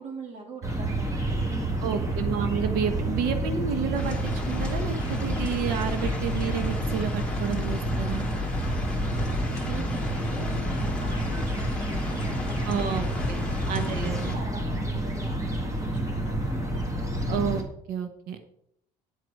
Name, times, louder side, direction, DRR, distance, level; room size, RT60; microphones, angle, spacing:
voice 1, 0.0-2.1 9.6-16.7, right 3 dB, 50° right, 2 dB, 3.1 m, -44 dB
sound 1, 0.6-17.6, right 1 dB, 20° right, 1.9 m, -29 dB
voice 2, 1.8-8.3 12.6-13.4 13.7-14.3 17.3-18.4, right 7 dB, 80° right, 8 dB, 1.1 m, -30 dB
sound 2, 4.0-14.4, left 3 dB, 5° left, 2.1 m, -35 dB
10.0 x 7.8 x 5.4 m, 0.74 s
cardioid pair, 165°, 15 cm